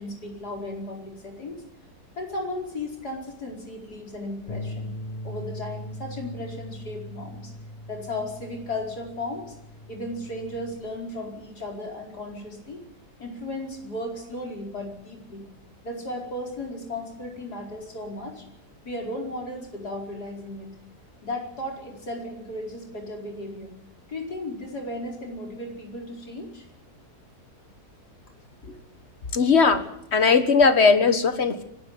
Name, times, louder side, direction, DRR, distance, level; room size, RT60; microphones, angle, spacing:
voice 1, 0.0-1.6 2.2-4.9 5.2-7.5 7.9-9.5 9.9-12.8 13.2-15.4 15.8-18.4 18.8-20.7 21.2-23.7 24.1-26.6, left 1 dB, 75° left, 1 dB, 5.2 m, -35 dB
Bass guitar, 4.5-10.7, left 1 dB, 25° left, 2.0 m, -39 dB
voice 2, 29.3-29.9 30.1-31.6, left 5 dB, 40° left, 10 dB, 1.7 m, -19 dB
24.0 x 12.5 x 9.5 m, 0.81 s
omnidirectional pair, 1.7 m